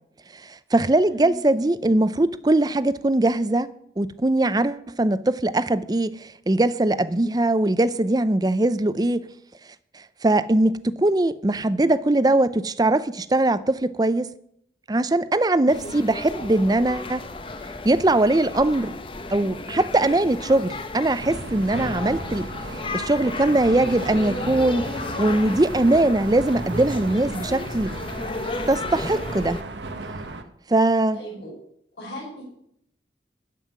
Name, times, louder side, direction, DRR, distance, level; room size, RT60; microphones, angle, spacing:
voice 1, 0.5-3.7 4.0-9.3 10.2-14.3 14.9-17.2 17.8-18.9 19.3-22.5 22.9-24.9 25.2-27.9 28.7-29.6 30.7-31.2, right 2 dB, 20° right, 0.5 m, -21 dB
voice 2, 1.0-1.7 15.7-15.9 24.0-24.1 31.1-31.5 32.0-32.4, equal, 80° left, 5.3 m, -39 dB
sound 1, 15.7-29.6, left 2 dB, 30° left, 0.9 m, -34 dB
sound 2, 21.2-30.4, right 2 dB, 85° right, 1.2 m, -35 dB
13.5 x 5.6 x 9.5 m
head